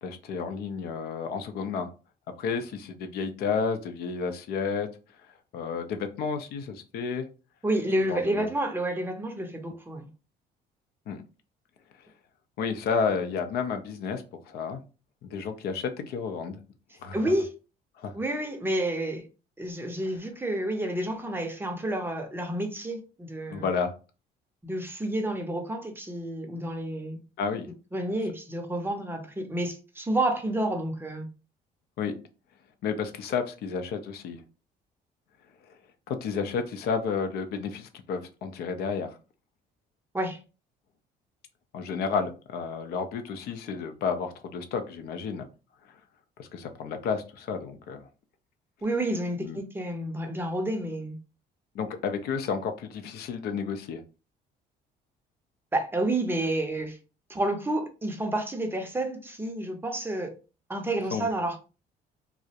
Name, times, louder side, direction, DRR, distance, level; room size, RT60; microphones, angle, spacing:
voice 1, 0.0-1.9 2.4-4.9 5.5-7.3 8.1-8.5 11.1-11.2 12.6-14.8 15.2-16.6 17.0-17.2 18.0-18.1 23.5-23.9 27.4-27.7 32.0-32.1 32.8-34.4 36.1-39.1 41.7-45.5 46.4-48.0 49.4-49.6 51.7-54.0 61.1-61.3, left 5 dB, 70° left, 0.5 m, -31 dB
voice 2, 7.6-10.1 17.1-17.5 18.1-19.3 19.6-23.7 24.6-27.2 27.9-31.3 40.1-40.4 48.8-51.2 55.7-57.0 57.3-60.3 60.7-61.6, right 1 dB, 15° right, 0.5 m, -30 dB
2.3 x 2.0 x 2.7 m
cardioid pair, 110°, 17 cm